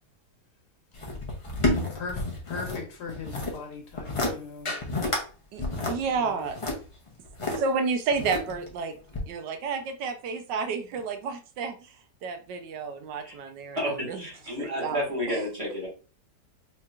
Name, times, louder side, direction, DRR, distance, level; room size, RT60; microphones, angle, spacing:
sound 1, 0.9-2.8 3.1-3.6 3.9-4.3 4.7-5.2 5.6-7.6 8.1-8.7 9.1-9.2, left 2 dB, 55° left, 0.3 m, -29 dB
voice 1, 1.7-4.7 5.7-6.5, left 5 dB, 70° left, 1.5 m, -40 dB
voice 2, 5.5-6.6 7.6-8.9 9.3-12.0 12.2-14.2 14.6-15.4, right 5 dB, 80° right, 1.3 m, -31 dB
voice 3, 13.7-15.9, equal, 20° right, 1.6 m, -31 dB
4.5 x 3.0 x 2.3 m
omnidirectional pair, 1.9 m